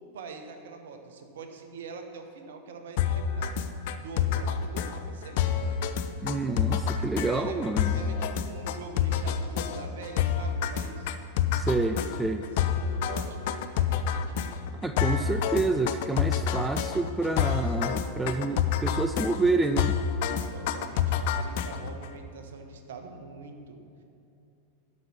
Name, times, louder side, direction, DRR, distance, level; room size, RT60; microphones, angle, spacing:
voice 1, 0.1-3.5 4.0-5.8 7.3-11.1 12.4-14.6 20.5-23.8, right 4 dB, 60° right, 6 dB, 0.9 m, -44 dB
sound 1, 3.0-22.1, left 8 dB, 50° left, 0.5 m, -28 dB
voice 2, 6.2-8.2 11.5-12.4 14.8-19.9, right 3 dB, 10° right, 8 dB, 0.3 m, -28 dB
12.5 x 5.3 x 5.9 m, 2.6 s
figure-of-eight pair, 90°, 0 cm